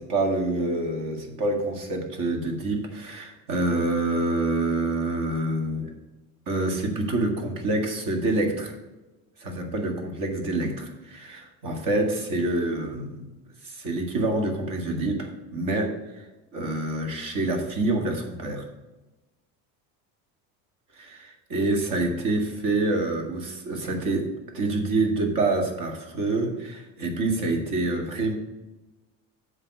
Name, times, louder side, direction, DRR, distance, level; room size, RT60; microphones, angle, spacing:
voice 1, 0.0-5.9 6.5-8.7 9.4-13.3 13.6-16.3 16.5-18.7 20.9-28.4, right 2 dB, 60° right, 3 dB, 2.1 m, -27 dB
7.3 x 5.0 x 6.7 m, 1.1 s
cardioid pair, 115°, 38 cm